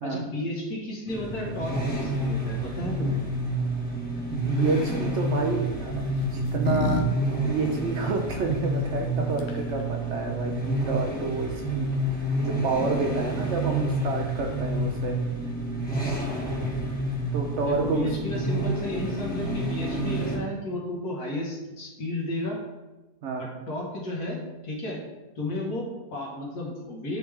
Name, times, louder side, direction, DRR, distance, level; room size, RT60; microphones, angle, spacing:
voice 1, 0.0-3.2 17.6-22.6 23.4-24.4 24.6-25.0 25.4-27.2, left 1 dB, 80° left, -3 dB, 1.9 m, -33 dB
sound 1, 1.1-20.4, right 1 dB, 5° left, 0.9 m, -29 dB
voice 2, 4.3-5.9 6.2-7.0 7.3-15.2 17.3-18.1 23.2-23.5, right 4 dB, 60° right, 3 dB, 0.8 m, -29 dB
sound 2, 4.6-5.0 6.0-7.0 7.3-7.4 9.1-9.2 9.4-9.8, left 4 dB, 60° left, 0.7 m, -30 dB
8.6 x 3.3 x 3.5 m, 1.1 s
omnidirectional pair, 1.6 m